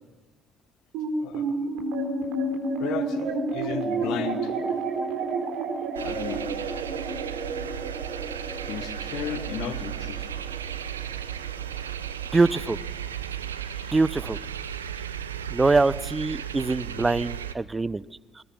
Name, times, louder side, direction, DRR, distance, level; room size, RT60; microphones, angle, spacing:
sound 1, 0.9-13.6, right 3 dB, 65° right, 3.9 m, -31 dB
voice 1, 1.1-1.6 2.8-4.6 6.0-6.5 8.7-10.4 13.6-13.9, left 9 dB, 60° left, 11 dB, 1.7 m, -35 dB
sound 2, 5.9-17.5, right 9 dB, 80° right, 0.9 m, -35 dB
voice 2, 12.3-12.8 13.9-14.4 15.5-18.0, right 3 dB, 20° right, 21 dB, 0.7 m, -23 dB
22.5 x 20.5 x 9.7 m, 1.2 s
figure-of-eight pair, 45°, 0 cm